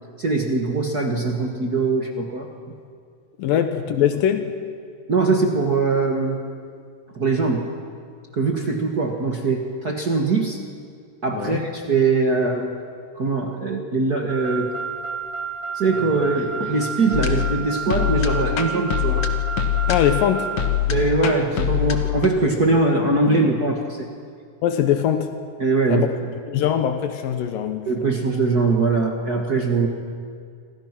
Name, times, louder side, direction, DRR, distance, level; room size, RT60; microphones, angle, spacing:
voice 1, 0.2-2.5 5.1-6.4 7.1-7.7 8.3-10.6 11.2-12.7 13.1-14.7 15.7-19.3 20.9-24.1 25.6-26.3 27.9-29.9, right 3 dB, 40° right, 1 dB, 1.5 m, -22 dB
voice 2, 3.4-4.5 11.3-11.6 19.9-20.6 24.6-25.4 25.9-26.1 26.5-28.1, left 10 dB, 80° left, 8 dB, 2.7 m, -22 dB
Car, 14.3-20.7, right 5 dB, 55° right, 3.2 m, -31 dB
sound 1, 17.1-22.3, left 11 dB, 55° left, 1.6 m, -24 dB
28.5 x 25.5 x 6.1 m, 2.2 s
omnidirectional pair, 3.9 m